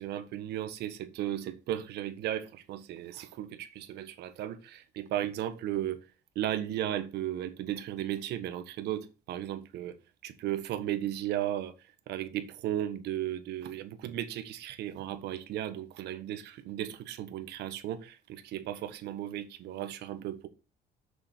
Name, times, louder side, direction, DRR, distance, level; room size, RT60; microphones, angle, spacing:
voice 1, 0.0-6.1 6.3-20.5, right 12 dB, 75° right, 1.4 m, -35 dB
7.1 x 6.9 x 6.7 m
cardioid pair, 110°, 17 cm